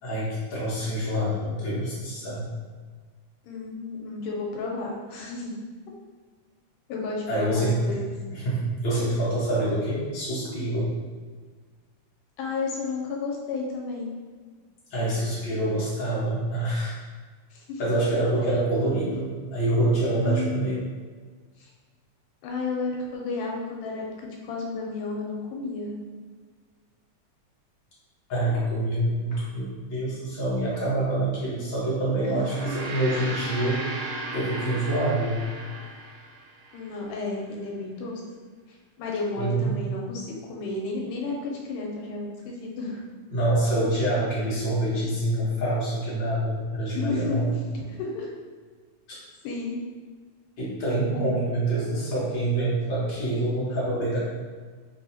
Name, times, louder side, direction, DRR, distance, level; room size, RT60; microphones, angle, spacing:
voice 1, 0.0-2.5 7.3-7.9 8.3-10.9 14.9-17.0 17.8-20.8 28.3-33.8 34.3-35.5 39.4-39.8 43.3-47.5 50.6-54.2, right 1 dB, 60° left, -8 dB, 1.3 m, -26 dB
voice 2, 3.5-5.5 6.9-8.0 12.4-14.1 17.5-17.8 20.2-20.8 21.6-21.7 22.4-24.1 24.4-26.0 32.2-32.4 36.7-38.2 39.0-43.0 46.9-47.5 48.0-48.3 49.4-49.8 51.1-51.3, left 3 dB, 85° left, -1 dB, 2.1 m, -32 dB
Gong, 32.3-36.9, right 2 dB, 80° right, 2.0 m, -36 dB
4.6 x 2.7 x 2.7 m, 1.5 s
omnidirectional pair, 3.6 m